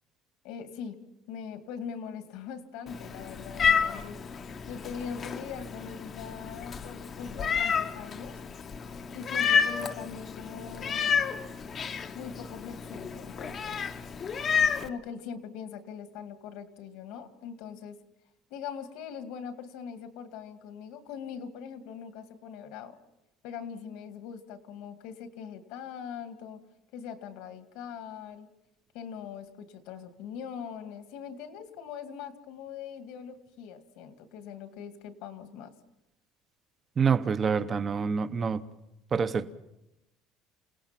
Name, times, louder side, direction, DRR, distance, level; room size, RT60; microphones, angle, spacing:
voice 1, 0.4-1.0 1.3-8.4 9.1-11.1 12.1-13.8 14.8-18.0 18.5-23.0 23.4-26.6 26.9-28.5 28.9-35.7, left 7 dB, 70° left, 8 dB, 2.2 m, -42 dB
Meow, 2.9-14.9, left 6 dB, 25° left, 0.9 m, -30 dB
voice 2, 37.0-38.6 39.1-39.5, right 6 dB, 25° right, 12 dB, 0.8 m, -26 dB
28.0 x 18.0 x 5.9 m, 0.91 s
cardioid pair, 170°, 0 cm